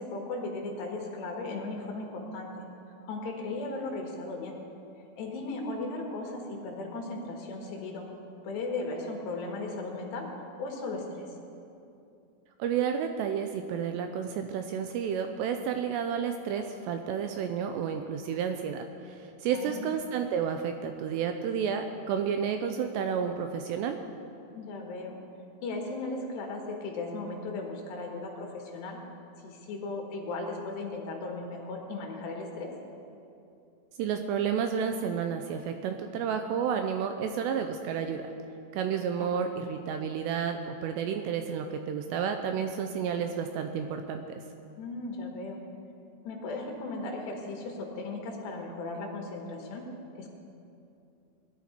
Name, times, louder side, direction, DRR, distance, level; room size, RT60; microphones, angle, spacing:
voice 1, 0.0-2.7 3.0-4.6 5.2-8.1 8.4-10.3 10.6-11.3 19.5-19.9 24.5-25.2 25.6-29.0 29.4-32.7 39.2-39.3 44.8-45.6 46.3-49.9 50.2-50.3, left 3 dB, 70° left, 1 dB, 3.5 m, -36 dB
voice 2, 12.6-19.2 19.4-24.0 34.0-38.3 38.7-44.4, right 7 dB, 85° right, 6 dB, 2.5 m, -31 dB
19.5 x 11.5 x 4.4 m, 2.7 s
omnidirectional pair, 5.3 m